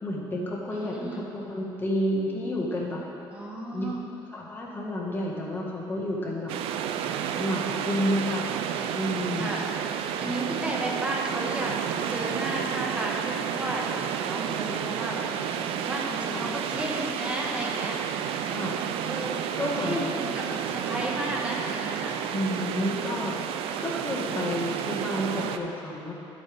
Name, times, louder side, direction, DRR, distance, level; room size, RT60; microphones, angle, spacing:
voice 1, 0.0-3.0 3.7-3.9 4.3-6.5 7.4-8.5 8.9-9.5 10.2-10.4 16.3-16.5 18.5-18.8 19.6-20.1 22.3-23.4 23.8-26.1, left 1 dB, 20° left, -3 dB, 1.6 m, -30 dB
voice 2, 0.7-1.3 3.3-4.0 9.4-9.7 10.2-18.0 19.0-19.4 19.7-22.2, right 1 dB, 15° right, -3 dB, 1.5 m, -33 dB
sound 1, 6.5-25.6, right 8 dB, 80° right, 0.5 m, -31 dB
11.5 x 8.3 x 3.5 m, 2.8 s
cardioid pair, 125°, 10 cm